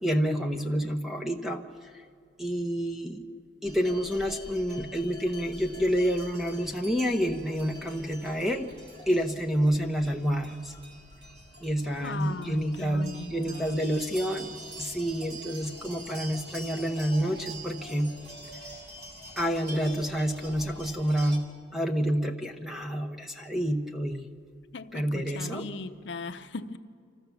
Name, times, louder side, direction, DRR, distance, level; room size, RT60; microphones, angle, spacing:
voice 1, 0.0-1.6 2.4-3.3 3.6-8.7 9.1-10.7 11.6-14.5 14.8-18.1 19.4-21.4 21.7-24.3 24.9-25.6, equal, ahead, 3 dB, 0.9 m, -28 dB
sound 1, 3.6-21.4, right 1 dB, 55° right, 2.9 m, -45 dB
voice 2, 12.0-13.8 24.7-26.8, left 3 dB, 65° left, 8 dB, 0.7 m, -38 dB
25.5 x 14.5 x 7.0 m, 2.2 s
head